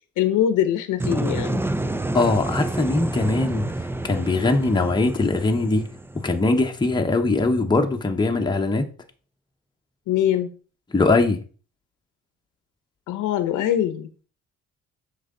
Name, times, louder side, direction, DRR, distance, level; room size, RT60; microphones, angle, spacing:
voice 1, 0.2-1.6 10.1-10.5 13.1-14.1, left 10 dB, 90° left, 0.8 m, -22 dB
sound 1, 1.0-6.9, right 1 dB, 10° right, 0.5 m, -29 dB
voice 2, 2.1-3.7 4.0-5.9 6.2-8.8 10.9-11.4, left 2 dB, 15° left, 1.0 m, -21 dB
8.0 x 5.7 x 3.8 m
cardioid pair, 90°, 30 cm